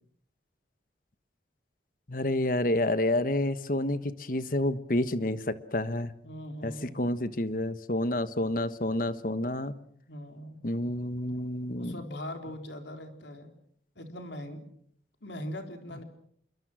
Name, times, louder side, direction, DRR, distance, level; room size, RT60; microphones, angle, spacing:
voice 1, 2.1-6.1 6.6-9.7 10.6-12.0, left 1 dB, 45° left, 13 dB, 1.3 m, -29 dB
voice 2, 6.2-7.1 10.1-10.6 11.8-13.5 14.0-14.6 15.2-16.0, equal, 70° left, 5 dB, 4.0 m, -40 dB
27.0 x 23.0 x 6.2 m, 0.65 s
head